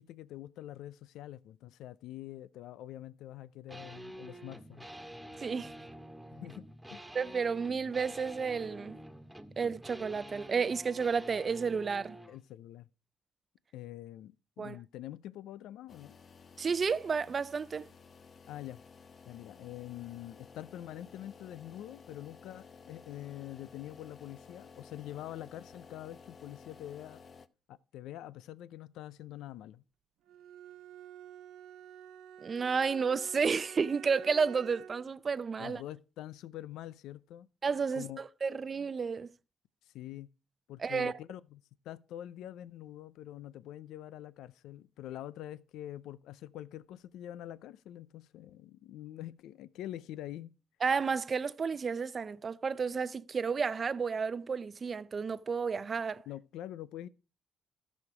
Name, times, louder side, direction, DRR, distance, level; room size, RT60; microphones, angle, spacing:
voice 1, 0.0-4.9 6.3-6.6 6.9-7.0 12.3-12.9 13.7-16.2 18.5-18.8 19.3-27.2 27.7-29.8 35.6-37.5 37.9-38.2 39.8-40.3 40.7-50.5 56.3-57.1, left 13 dB, 90° left, 0.4 m, -45 dB
sound 1, 3.7-12.4, right 1 dB, 5° right, 1.8 m, -48 dB
voice 2, 5.4-5.9 7.1-9.0 9.6-12.2 14.6-14.8 16.6-17.9 32.4-35.8 37.6-39.3 40.8-41.2 50.8-56.2, right 5 dB, 40° right, 0.6 m, -32 dB
sound 2, 15.9-27.5, left 5 dB, 45° left, 0.9 m, -55 dB
Bowed string instrument, 30.3-35.1, right 9 dB, 80° right, 0.8 m, -50 dB
13.5 x 6.4 x 4.8 m
cardioid pair, 90°, 0 cm